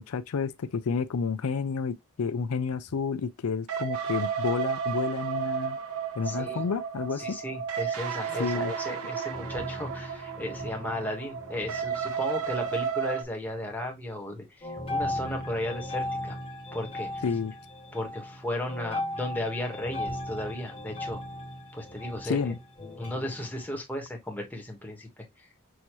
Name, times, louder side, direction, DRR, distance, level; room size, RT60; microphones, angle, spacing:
voice 1, 0.0-5.8 6.2-7.4 8.4-8.7 17.2-17.5 22.2-22.6, left 5 dB, 85° left, 0.5 m, -30 dB
sound 1, 3.7-13.2, right 7 dB, 90° right, 1.0 m, -33 dB
voice 2, 6.2-6.6 7.2-16.4 16.7-17.2 17.9-21.2 21.7-22.4 23.0-25.2, left 1 dB, 10° left, 1.3 m, -35 dB
sound 2, 8.0-9.0 9.3-13.1 13.4-14.0 14.6-23.7, left 1 dB, 25° left, 1.5 m, -38 dB
6.3 x 2.7 x 3.0 m
head